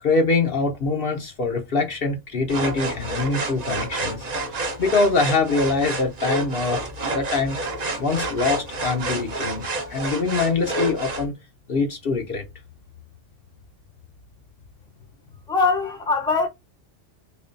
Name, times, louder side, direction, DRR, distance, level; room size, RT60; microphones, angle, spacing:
voice 1, 0.0-4.3 4.8-6.8 7.1-7.6 8.0-11.3 11.7-12.4, left 3 dB, 55° left, 0.9 m, -23 dB
sound 1, 2.5-11.3, right 2 dB, 40° right, 0.7 m, -29 dB
voice 2, 15.5-16.5, left 4 dB, 5° left, 0.7 m, -21 dB
4.4 x 2.8 x 2.5 m
omnidirectional pair, 1.2 m